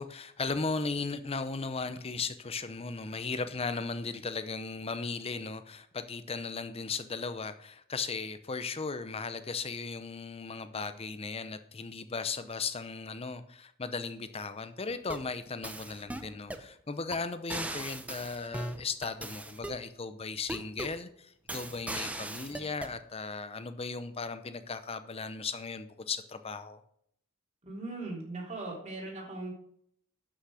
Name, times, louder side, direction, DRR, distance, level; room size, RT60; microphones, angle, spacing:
voice 1, 0.0-26.8, left 4 dB, 25° left, 0.7 m, -37 dB
sound 1, 14.9-15.3 15.6-16.7 17.1-17.2 17.5-19.8 20.5-21.0 21.5-23.0, right 1 dB, 5° right, 0.6 m, -39 dB
voice 2, 27.6-29.5, right 2 dB, 30° right, 3.4 m, -39 dB
11.5 x 6.4 x 4.9 m
head